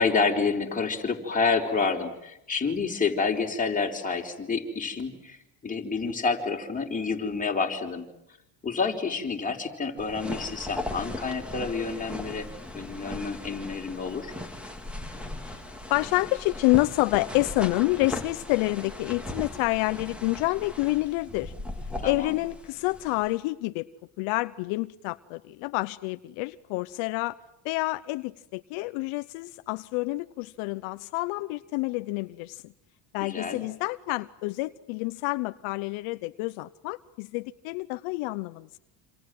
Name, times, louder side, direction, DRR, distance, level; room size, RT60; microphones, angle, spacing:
voice 1, 0.0-5.4 5.6-8.1 8.6-12.5 12.7-14.3 22.0-22.4 33.2-33.6, left 4 dB, 15° left, 0 dB, 4.6 m, -28 dB
sound 1, 10.0-23.4, left 1 dB, ahead, 3.1 m, -38 dB
voice 2, 15.9-21.5 22.0-23.9 24.2-27.4 27.6-32.6 33.1-38.8, left 22 dB, 75° left, 11 dB, 1.0 m, -28 dB
27.5 x 27.0 x 7.9 m, 0.82 s
cardioid pair, 130°, 50 cm